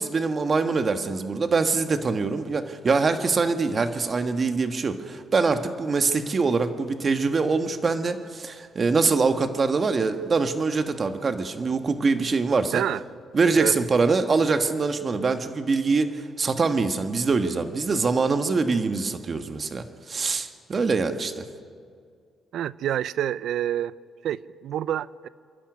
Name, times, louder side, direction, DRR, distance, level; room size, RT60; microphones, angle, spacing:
voice 1, 0.0-12.8 13.3-21.5, right 4 dB, 40° right, 8 dB, 1.5 m, -24 dB
voice 2, 22.5-23.9 24.2-25.3, right 11 dB, 75° right, 19 dB, 0.5 m, -27 dB
27.0 x 11.5 x 9.6 m, 2.2 s
cardioid pair, 90°, 0 cm